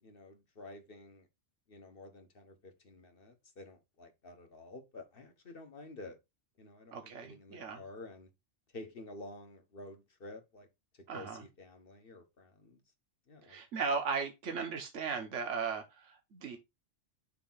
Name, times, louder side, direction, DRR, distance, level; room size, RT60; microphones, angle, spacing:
voice 1, 0.0-1.3 1.7-6.2 6.6-8.3 8.7-10.7 10.9-12.8 13.3-13.6, left 2 dB, 50° left, 1.5 m, -50 dB
voice 2, 6.9-7.8 11.1-11.4 13.5-16.6, right 5 dB, 75° right, 1.5 m, -37 dB
6.7 x 2.8 x 5.7 m
omnidirectional pair, 1.3 m